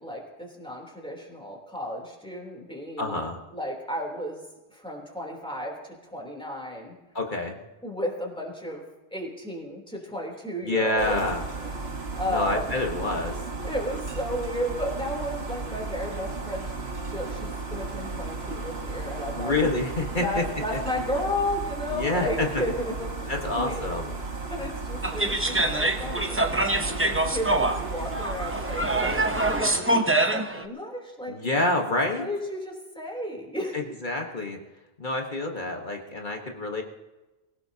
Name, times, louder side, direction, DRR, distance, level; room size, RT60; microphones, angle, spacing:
voice 1, 0.0-3.2 3.5-4.4 4.7-7.0 7.8-11.3 11.6-12.7 13.6-19.5 20.2-24.1 24.5-31.4 32.2-33.8, left 1 dB, 5° left, -1 dB, 3.3 m, -33 dB
voice 2, 3.0-3.4 7.1-7.6 10.6-11.4 12.2-13.4 19.4-20.4 20.7-20.8 21.9-22.5 23.3-24.1 29.6-29.8 31.3-32.3 33.7-34.6 35.0-36.8, left 2 dB, 45° left, 2 dB, 1.5 m, -27 dB
sound 1, 11.0-29.6, right 3 dB, 65° right, 1.6 m, -34 dB
sound 2, 25.0-30.6, right 2 dB, 15° right, 0.7 m, -25 dB
23.5 x 16.5 x 2.8 m, 1.1 s
omnidirectional pair, 1.1 m